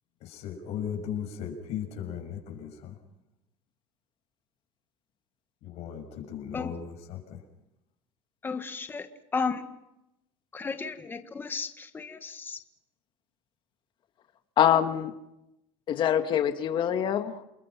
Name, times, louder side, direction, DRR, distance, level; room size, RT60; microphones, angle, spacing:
voice 1, 0.2-3.0 5.6-7.4, left 8 dB, 65° left, 3 dB, 6.6 m, -37 dB
voice 2, 8.4-9.1 9.3-9.6 10.5-12.6, left 4 dB, 15° left, 8 dB, 1.6 m, -33 dB
voice 3, 14.6-15.1 15.9-17.4, left 10 dB, 45° left, 8 dB, 2.1 m, -24 dB
29.5 x 21.5 x 6.1 m, 0.87 s
cardioid pair, 140°, 12 cm